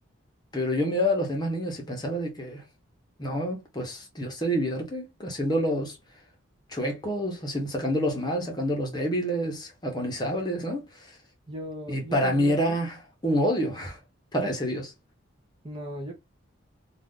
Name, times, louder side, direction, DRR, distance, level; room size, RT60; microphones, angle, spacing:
voice 1, 0.5-2.6 3.2-6.0 6.7-11.0 11.9-14.0 14.3-14.9, equal, 20° left, 0.8 m, -28 dB
voice 2, 11.5-12.8 13.3-13.4 15.6-16.1, right 1 dB, 25° right, 0.6 m, -38 dB
2.5 x 2.4 x 3.5 m
head